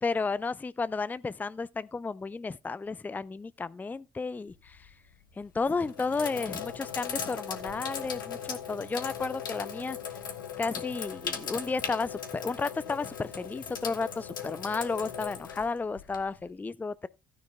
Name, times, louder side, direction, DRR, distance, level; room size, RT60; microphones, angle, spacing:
voice 1, 0.0-4.9 5.4-10.0 10.6-17.1, left 4 dB, 15° left, 0.4 m, -33 dB
Sink (filling or washing), 4.5-4.9 5.6-16.5, left 7 dB, 80° left, 1.1 m, -38 dB
15.5 x 9.9 x 2.2 m
figure-of-eight pair, 45°, 11 cm